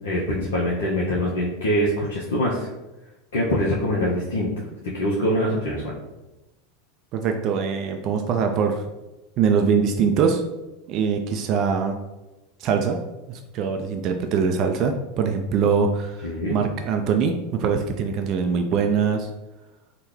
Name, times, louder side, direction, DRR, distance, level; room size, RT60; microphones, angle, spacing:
voice 1, 0.0-2.7 3.3-6.0 16.2-16.6, equal, 70° left, -5 dB, 0.6 m, -24 dB
voice 2, 7.1-8.8 9.4-10.4 10.9-12.0 12.6-13.0 13.3-19.3, right 6 dB, 45° right, 5 dB, 0.3 m, -23 dB
3.6 x 2.1 x 3.1 m, 1.0 s
hypercardioid pair, 85°, 0 cm